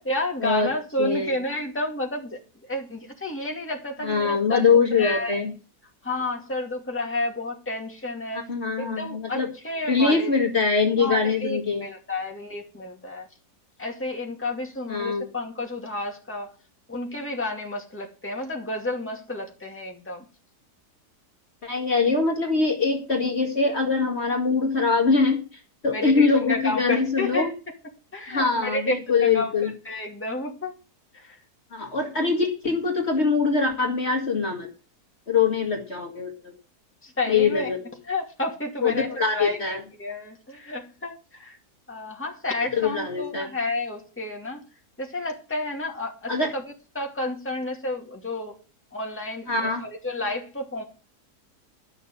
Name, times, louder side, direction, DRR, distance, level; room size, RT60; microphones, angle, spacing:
voice 1, 0.0-4.7 5.0-5.4 6.0-8.4 8.8-10.3 11.0-13.3 13.8-16.5 16.9-20.2 25.9-27.5 28.1-30.7 31.1-31.4 37.0-37.7 38.1-41.6 41.9-44.6 45.0-46.6 46.9-48.5 48.9-50.8, left 2 dB, 5° left, 0 dB, 2.2 m, -31 dB
voice 2, 1.0-1.3 4.0-5.5 8.5-9.5 9.9-11.8 14.9-15.3 21.6-25.4 25.8-27.5 28.3-29.7 31.7-34.7 35.3-36.5 37.3-37.8 38.8-39.8 42.7-43.5 46.3-46.5 49.5-49.8, left 4 dB, 40° left, 1 dB, 2.2 m, -23 dB
12.0 x 6.6 x 6.9 m, 0.34 s
omnidirectional pair, 1.7 m